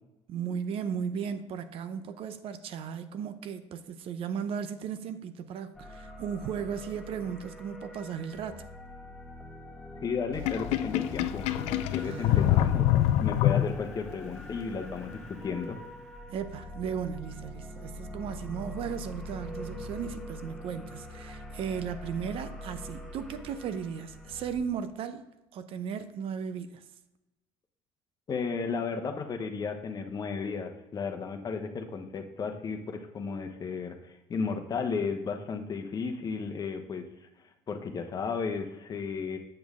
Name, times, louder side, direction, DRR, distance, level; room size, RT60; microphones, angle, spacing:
voice 1, 0.3-8.7 12.0-12.4 16.3-25.2 25.5-26.8, right 7 dB, 55° right, 0.6 m, -36 dB
sound 1, 5.7-24.6, equal, ahead, 1.4 m, -44 dB
voice 2, 10.0-15.8 28.3-37.1 37.7-39.4, left 5 dB, 35° left, 0.9 m, -34 dB
Sink (filling or washing), 10.3-14.1, left 12 dB, 75° left, 0.4 m, -25 dB
7.8 x 6.2 x 3.6 m
cardioid pair, 105°, 11 cm